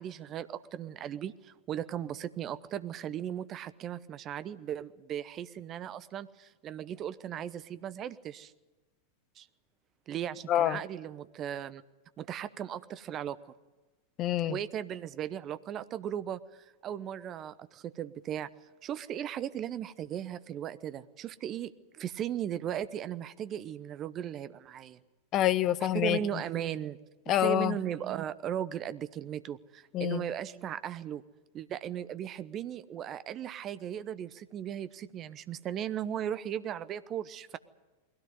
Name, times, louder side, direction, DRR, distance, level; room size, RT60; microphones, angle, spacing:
voice 1, 0.0-8.5 9.4-9.5 10.1-11.8 12.2-13.4 14.5-18.5 18.8-25.0 25.9-27.0 27.3-31.2 31.5-37.6, right 10 dB, 30° right, 14 dB, 0.9 m, -37 dB
voice 2, 10.5-10.8 14.2-14.6 25.3-26.2 27.3-27.8 29.9-30.2, left 12 dB, 35° left, 17 dB, 0.9 m, -26 dB
21.5 x 17.0 x 9.7 m, 1.2 s
figure-of-eight pair, 90°, 0 cm